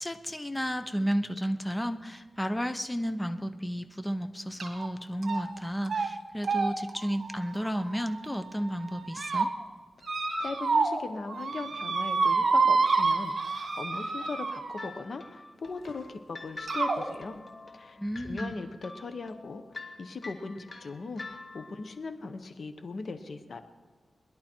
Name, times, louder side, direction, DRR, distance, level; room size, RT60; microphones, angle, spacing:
voice 1, 0.0-9.5 18.0-18.6, equal, 10° left, 9 dB, 0.9 m, -32 dB
sound 1, 4.6-4.9 5.2-5.6 5.9-6.1 6.4-8.4 8.9-9.5 10.0-11.0 11.3-14.9 15.9-16.0 16.7-17.0, right 4 dB, 60° right, 1.8 m, -28 dB
voice 2, 10.4-17.4 17.7-23.6, left 3 dB, 65° left, 8 dB, 1.1 m, -39 dB
sound 2, 14.8-21.9, left 3 dB, 40° left, 1.8 m, -46 dB
21.0 x 11.0 x 4.5 m, 1.4 s
cardioid pair, 75°, 0 cm